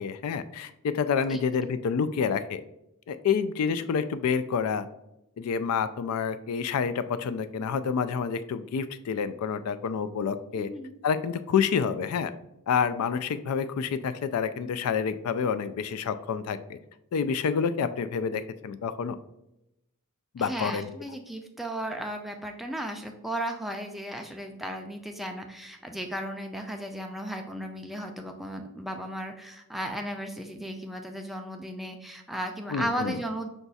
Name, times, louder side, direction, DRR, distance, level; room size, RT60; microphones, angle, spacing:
voice 1, 0.0-2.6 3.1-4.9 5.4-10.7 11.0-12.3 12.7-16.8 17.1-19.2 20.3-20.9 32.7-33.2, left 6 dB, 85° left, 13 dB, 0.3 m, -28 dB
voice 2, 10.5-10.9 20.4-33.5, right 1 dB, ahead, 3 dB, 0.3 m, -35 dB
5.1 x 2.3 x 4.0 m, 0.87 s
head